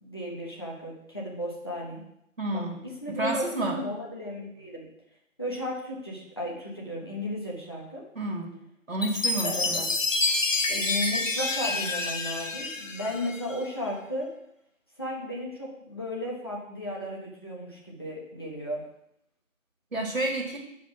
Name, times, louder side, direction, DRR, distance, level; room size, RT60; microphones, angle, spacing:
voice 1, 0.0-2.0 2.5-4.9 5.4-8.0 9.4-9.8 10.7-14.3 15.0-18.8, left 1 dB, 20° left, -4 dB, 1.1 m, -34 dB
voice 2, 2.4-2.8 3.2-3.8 8.2-8.6 8.9-9.9 10.3-10.4 19.9-20.6, right 2 dB, 65° right, -1 dB, 2.0 m, -30 dB
Chime, 9.0-13.6, left 3 dB, 65° left, 1.1 m, -28 dB
8.9 x 5.1 x 5.8 m, 0.79 s
figure-of-eight pair, 165°, 41 cm